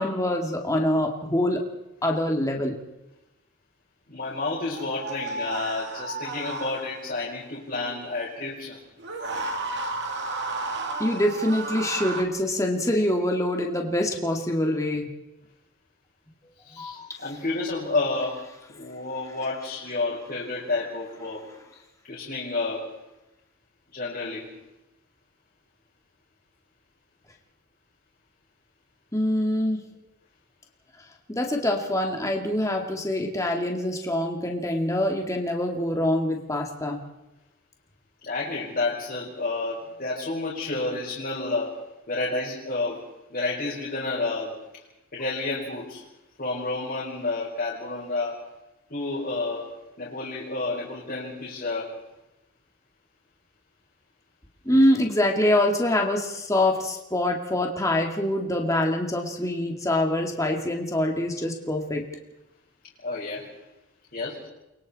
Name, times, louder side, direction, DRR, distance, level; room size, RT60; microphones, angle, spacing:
voice 1, 0.0-1.6 2.0-2.8 11.0-15.1 16.8-17.1 29.1-29.9 31.3-37.0 54.6-62.0, left 1 dB, 15° left, 1 dB, 2.4 m, -25 dB
voice 2, 4.1-8.8 16.7-18.4 18.7-21.4 22.1-22.9 23.9-24.5 38.2-41.8 42.1-43.0 43.3-44.5 45.1-46.0 46.4-48.4 48.9-49.7 50.0-51.9 63.0-63.5 64.1-64.5, left 3 dB, 40° left, -6 dB, 5.0 m, -30 dB
sound 1, 4.7-7.1 9.0-12.2, right 3 dB, 50° right, 2.3 m, -32 dB
29.5 x 23.0 x 4.3 m, 0.94 s
head